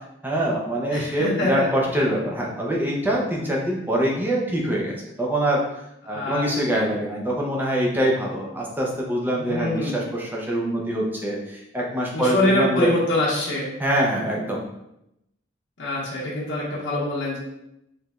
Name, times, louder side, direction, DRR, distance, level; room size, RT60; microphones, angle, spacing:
voice 1, 0.2-5.6 6.1-12.9 13.8-14.6, right 1 dB, 10° right, -3 dB, 0.6 m, -24 dB
voice 2, 0.9-1.7 6.1-6.9 9.4-10.0 12.1-13.7 15.8-17.4, left 1 dB, 80° left, -6 dB, 1.2 m, -25 dB
4.7 x 3.3 x 2.4 m, 0.84 s
head